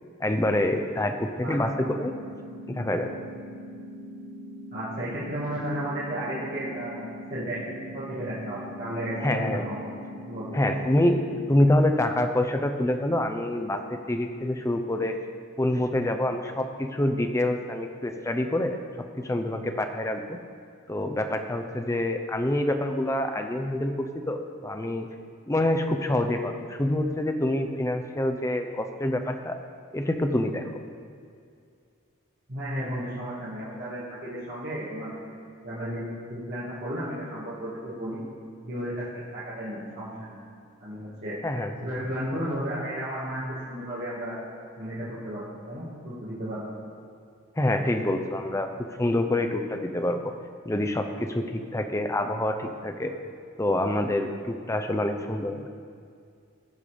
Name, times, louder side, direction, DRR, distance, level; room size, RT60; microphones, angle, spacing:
voice 1, 0.2-2.1 2.7-3.1 9.2-9.7 10.5-11.2 11.5-15.2 15.6-18.8 19.2-20.4 20.9-25.1 25.5-29.6 29.9-30.6 41.4-41.7 47.6-48.7 49.0-50.3 50.7-53.1 53.6-55.6, left 1 dB, 15° left, 6 dB, 0.5 m, -26 dB
voice 2, 1.4-1.8 4.7-7.6 7.9-9.9 10.3-10.6 32.5-35.2 35.6-38.2 38.6-39.1 39.3-40.4 40.8-41.4 41.8-44.3 44.8-46.7, equal, 45° right, -10 dB, 2.0 m, -33 dB
sound 1, 1.6-11.6, equal, 70° right, 2.0 m, -42 dB
15.0 x 5.5 x 5.0 m, 2.3 s
head